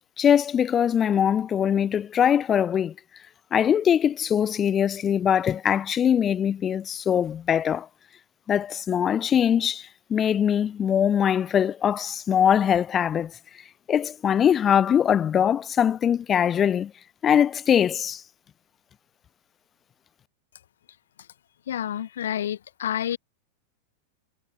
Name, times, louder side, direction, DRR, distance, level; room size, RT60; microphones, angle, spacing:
voice 1, 0.2-2.9 3.5-7.9 8.5-13.3 13.9-16.9 17.2-18.2, left 9 dB, 25° left, 1.5 m, -22 dB
voice 2, 21.7-23.2, left 10 dB, 60° left, 3.3 m, -29 dB
figure-of-eight pair, 90°, 0 cm